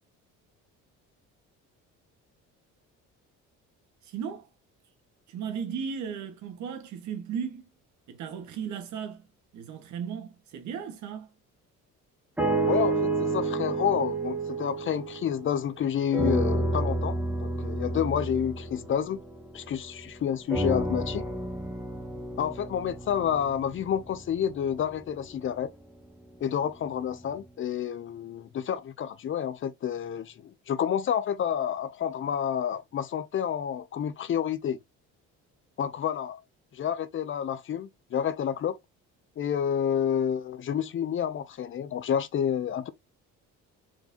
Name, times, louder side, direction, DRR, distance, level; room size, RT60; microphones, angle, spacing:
voice 1, 4.0-4.5 5.3-7.7 8.1-9.3 9.5-11.3, right 7 dB, 65° right, 1.5 m, -36 dB
sound 1, 12.4-15.7 16.1-19.9 20.5-24.7 25.4-25.5, right 2 dB, 5° right, 1.7 m, -30 dB
voice 2, 12.7-19.2 19.5-21.2 22.4-25.7 26.4-34.8 35.8-36.4 36.7-38.8 39.4-42.9, left 9 dB, 40° left, 0.6 m, -29 dB
4.6 x 4.0 x 2.8 m
cardioid pair, 120°, 31 cm